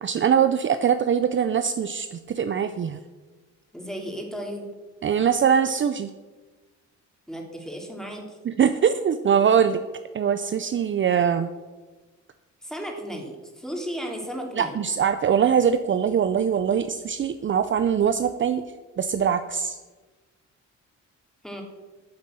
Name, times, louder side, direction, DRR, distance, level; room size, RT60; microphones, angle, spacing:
voice 1, 0.0-3.0 5.0-6.1 8.5-9.8 10.1-11.5 14.6-18.6 19.0-19.8, right 7 dB, 40° right, 10 dB, 0.6 m, -22 dB
voice 2, 3.7-4.7 7.3-8.4 12.6-14.7 21.4-21.6, equal, ahead, 1 dB, 2.9 m, -34 dB
9.7 x 7.8 x 7.8 m, 1.3 s
cardioid pair, 90°, 30 cm